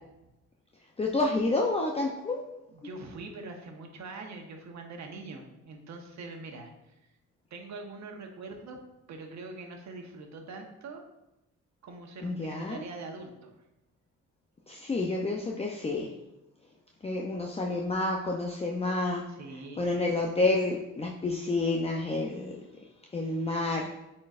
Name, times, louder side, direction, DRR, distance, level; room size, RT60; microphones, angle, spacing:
voice 1, 1.0-2.4 2.8-2.9 12.2-12.8 14.7-16.1 17.0-19.2 19.8-22.6 23.1-23.9, left 2 dB, 20° left, -1 dB, 0.7 m, -29 dB
voice 2, 2.7-6.9 7.5-8.8 9.1-11.0 11.8-13.6 19.3-19.9, right 3 dB, 65° right, 3 dB, 1.2 m, -43 dB
8.8 x 4.3 x 2.5 m, 0.95 s
cardioid pair, 90°, 30 cm